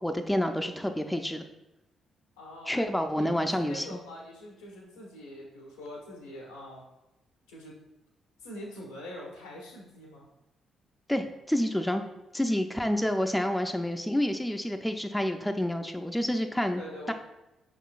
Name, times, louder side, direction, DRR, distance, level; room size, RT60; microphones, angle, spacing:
voice 1, 0.0-1.4 2.7-4.0 11.1-12.0 12.3-16.8 17.1-17.2, left 1 dB, 5° left, 6 dB, 0.5 m, -28 dB
voice 2, 2.4-2.8 3.1-6.9 7.5-7.7 8.4-10.3 16.7-17.1, left 1 dB, 90° left, -2 dB, 1.0 m, -44 dB
5.6 x 3.8 x 2.4 m, 0.96 s
hypercardioid pair, 45°, 0 cm